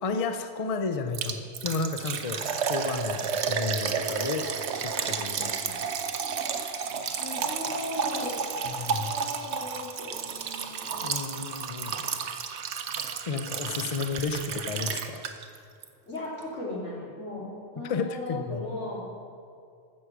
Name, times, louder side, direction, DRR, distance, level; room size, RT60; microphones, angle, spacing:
voice 1, 0.0-4.5 4.8-5.9 7.1-7.2 8.7-9.1 11.0-12.1 13.3-15.2 17.8-18.6, left 4 dB, 40° left, 7 dB, 0.6 m, -32 dB
Liquid, 1.1-15.6 15.8-15.9 16.4-16.5, right 6 dB, 70° right, 1.0 m, -32 dB
voice 2, 3.9-4.5 4.9-5.2 7.2-8.3 8.8-11.0 13.5-13.8 16.1-17.5 17.7-19.1, left 2 dB, 90° left, -5 dB, 3.1 m, -38 dB
14.5 x 6.4 x 6.0 m, 2.4 s
omnidirectional pair, 1.2 m